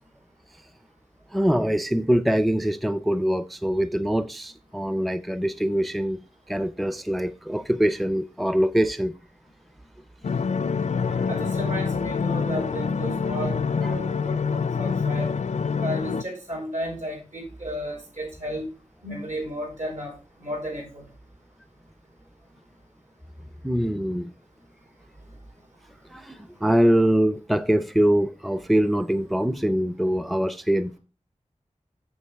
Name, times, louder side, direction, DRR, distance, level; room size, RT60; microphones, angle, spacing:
voice 1, 1.3-9.1 11.1-11.2 13.8-13.9 23.6-24.3 26.1-31.0, equal, ahead, 0.4 m, -23 dB
sound 1, 10.2-16.2, left 5 dB, 65° left, 0.4 m, -26 dB
voice 2, 11.3-15.3 15.8-18.6 19.0-21.0, equal, 75° right, 5.1 m, -33 dB
8.5 x 6.9 x 3.4 m
wide cardioid pair, 70°, 13 cm